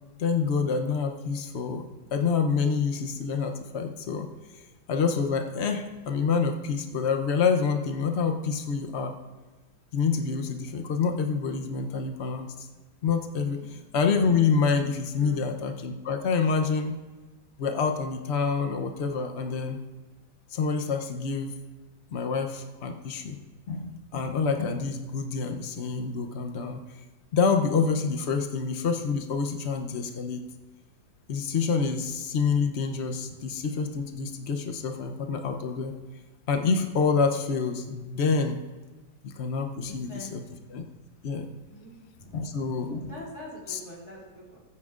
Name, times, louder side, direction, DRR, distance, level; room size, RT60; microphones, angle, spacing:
voice 1, 0.2-1.8 2.1-4.3 4.5-4.6 4.9-9.1 9.9-12.7 13.0-17.0 17.6-19.8 20.5-21.5 22.1-23.4 23.7-26.8 27.3-30.4 31.3-35.9 36.5-38.6 39.2-40.4 40.7-40.8 41.2-41.5 42.3-43.1 43.7-43.8, left 5 dB, 90° left, 5 dB, 0.5 m, -27 dB
voice 2, 39.8-40.4 41.7-42.4 43.1-44.6, equal, 20° left, -5 dB, 4.1 m, -44 dB
19.5 x 9.7 x 2.5 m, 1.3 s
omnidirectional pair, 2.2 m